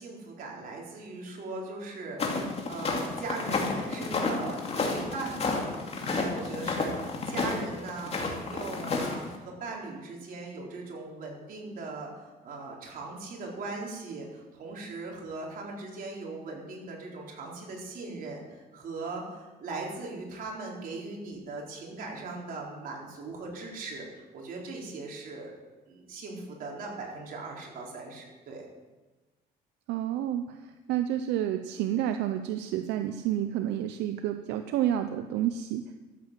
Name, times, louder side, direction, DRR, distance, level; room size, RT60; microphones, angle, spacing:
voice 1, 0.0-25.5 25.9-28.6, right 3 dB, 55° right, -2 dB, 4.1 m, -39 dB
sound 1, 2.2-9.4, left 3 dB, 35° left, 2.5 m, -31 dB
voice 2, 29.9-30.6 30.9-36.0, right 11 dB, 85° right, 8 dB, 0.7 m, -29 dB
13.5 x 7.8 x 7.4 m, 1.2 s
cardioid pair, 110°, 17 cm